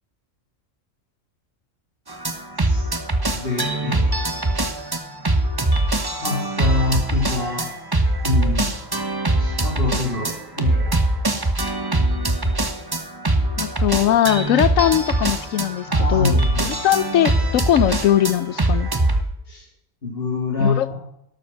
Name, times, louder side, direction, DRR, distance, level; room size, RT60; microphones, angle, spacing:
sound 1, 2.1-19.2, right 2 dB, 20° right, 1.0 m, -22 dB
voice 1, 2.6-2.9 3.3-4.2 6.2-7.7 8.2-8.7 9.3-11.0 15.9-16.8 19.5-19.6 20.0-21.0, left 3 dB, 45° left, 2.9 m, -25 dB
voice 2, 13.6-16.4 16.8-18.9 20.6-21.0, left 11 dB, 85° left, 1.1 m, -20 dB
12.5 x 12.0 x 6.0 m
omnidirectional pair, 1.3 m